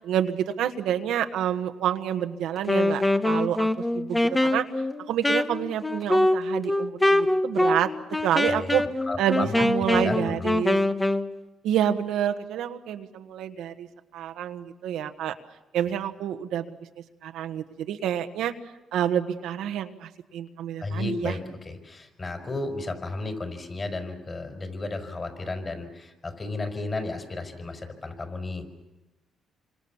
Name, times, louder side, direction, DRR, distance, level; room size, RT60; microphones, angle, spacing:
voice 1, 0.0-3.7 3.9-4.6 5.1-7.9 8.2-8.8 9.2-10.8 11.6-13.9 14.1-15.3 15.7-16.6 17.2-18.5 18.9-21.3, right 10 dB, 85° right, 7 dB, 1.5 m, -28 dB
Wind instrument woodwind instrument, 2.6-11.3, left 1 dB, 15° left, 1.1 m, -24 dB
voice 2, 8.4-9.5 9.9-10.5 20.8-28.7, left 3 dB, 30° left, 6 dB, 5.1 m, -33 dB
27.5 x 25.5 x 7.2 m, 1.0 s
cardioid pair, 90°, 0 cm